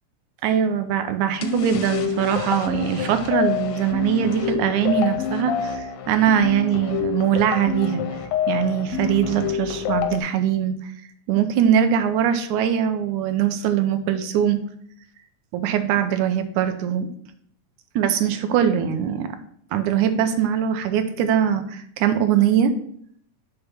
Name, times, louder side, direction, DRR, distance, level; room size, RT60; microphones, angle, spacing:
voice 1, 0.4-8.0 8.5-10.9 11.3-14.6 15.5-17.1 18.0-19.4 19.7-22.7, right 9 dB, 80° right, 8 dB, 2.0 m, -22 dB
sound 1, 1.4-10.2, left 7 dB, 80° left, 1.4 m, -27 dB
6.6 x 3.4 x 5.6 m, 0.65 s
omnidirectional pair, 3.4 m